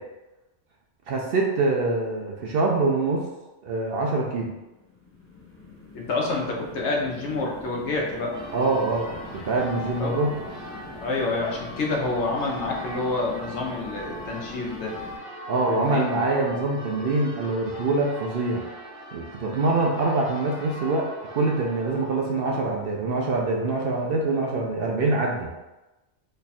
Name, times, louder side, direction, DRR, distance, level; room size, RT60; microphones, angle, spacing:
voice 1, 1.1-3.3 3.6-4.5 8.5-10.3 15.5-18.6 19.1-21.1 21.3-25.5, right 3 dB, 60° right, -1 dB, 0.7 m, -24 dB
sound 1, 4.7-15.2, left 2 dB, 15° left, 0.7 m, -43 dB
voice 2, 5.9-8.3 10.0-10.2 10.9-14.9 15.7-16.1, left 3 dB, 70° left, -1 dB, 1.0 m, -28 dB
Church bell, 8.3-24.1, equal, 40° right, 1.2 m, -41 dB
3.2 x 2.3 x 4.0 m, 1.0 s
omnidirectional pair, 1.2 m